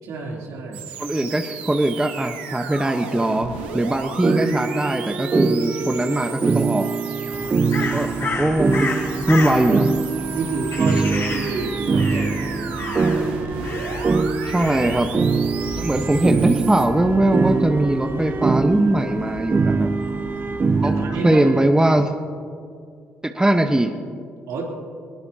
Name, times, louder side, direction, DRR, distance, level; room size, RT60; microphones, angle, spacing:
voice 1, 0.0-0.9 7.7-8.0 10.3-12.8 20.8-21.4 24.5-24.6, right 3 dB, 70° right, -2 dB, 3.3 m, -30 dB
sound 1, 0.7-16.9, right 7 dB, 90° right, 1.3 m, -36 dB
voice 2, 1.0-6.8 7.8-8.1 8.4-8.9 9.3-9.9 14.5-15.1 15.8-19.9 20.8-21.0 21.2-22.1 23.2-23.9, right 1 dB, 10° right, 6 dB, 1.1 m, -20 dB
sound 2, 4.2-21.7, right 4 dB, 35° right, 0.8 m, -23 dB
Crow, 7.3-21.0, left 3 dB, 50° left, 4.3 m, -33 dB
21.0 x 20.0 x 2.9 m, 2.3 s
hypercardioid pair, 50°, 6 cm